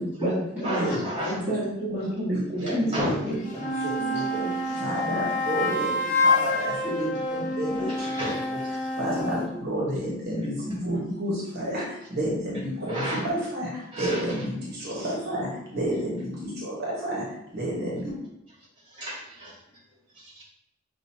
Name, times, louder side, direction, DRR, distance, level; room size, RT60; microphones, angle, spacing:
voice 1, 0.0-3.0 3.2-5.2 5.5-5.8 6.8-7.4 7.8-7.9 8.2-8.3 9.1-9.5, equal, 5° right, -15 dB, 1.6 m, -31 dB
voice 2, 0.6-1.4 2.6-3.2 7.9-8.9 12.9-13.3 13.9-14.5 15.0-15.1 18.8-19.6 20.1-20.4, equal, 25° right, -6 dB, 1.6 m, -33 dB
voice 3, 2.6-3.1 3.6-4.5 4.8-5.9 6.2-8.6 9.0-18.1, right 1 dB, 55° right, -4 dB, 1.2 m, -31 dB
sound 1, 3.3-9.5, left 2 dB, 40° left, 0.6 m, -27 dB
6.0 x 2.6 x 2.7 m, 0.83 s
head